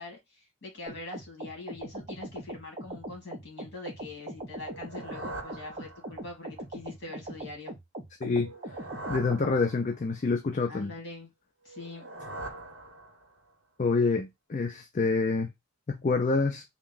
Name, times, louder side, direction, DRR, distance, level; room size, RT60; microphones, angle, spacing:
voice 1, 0.0-7.7 10.7-11.3 11.6-12.1, left 3 dB, 50° left, 1.8 m, -43 dB
sound 1, 0.9-9.6, right 1 dB, 30° right, 0.5 m, -41 dB
sound 2, 4.6-6.4 8.3-10.2 11.7-13.5, right 2 dB, 55° right, 0.9 m, -43 dB
voice 2, 8.2-8.5 9.1-10.9 13.8-15.5 15.9-16.6, left 4 dB, 35° left, 0.4 m, -27 dB
3.5 x 2.1 x 3.8 m
head